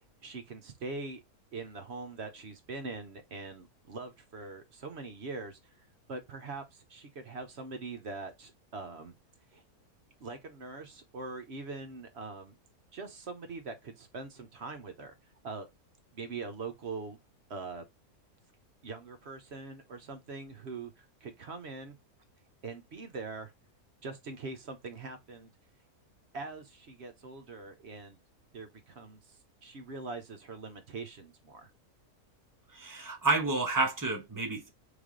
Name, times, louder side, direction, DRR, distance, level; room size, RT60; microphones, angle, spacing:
voice 1, 0.2-1.2 1.5-5.7 6.1-9.1 9.5-9.6 10.2-12.6 12.9-15.1 15.4-15.7 16.1-17.2 17.5-17.9 18.8-22.0 22.6-23.5 24.0-25.5 26.3-28.2 28.5-31.7, right 3 dB, 55° right, 0.9 m, -42 dB
voice 2, 32.7-34.7, right 3 dB, 15° right, 0.8 m, -30 dB
3.9 x 3.4 x 3.7 m
omnidirectional pair, 1.6 m